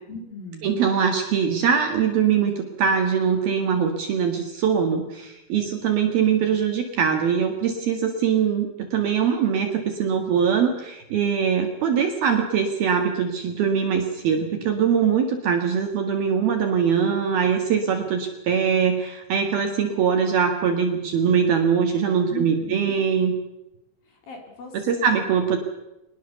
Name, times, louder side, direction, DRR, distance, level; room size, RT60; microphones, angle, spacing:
voice 1, 0.1-0.8 22.3-23.0 24.0-25.3, left 2 dB, 50° left, 3 dB, 4.8 m, -38 dB
voice 2, 0.6-23.3 24.7-25.6, right 7 dB, 60° right, 4 dB, 3.2 m, -22 dB
24.0 x 20.5 x 7.0 m, 0.92 s
omnidirectional pair, 5.9 m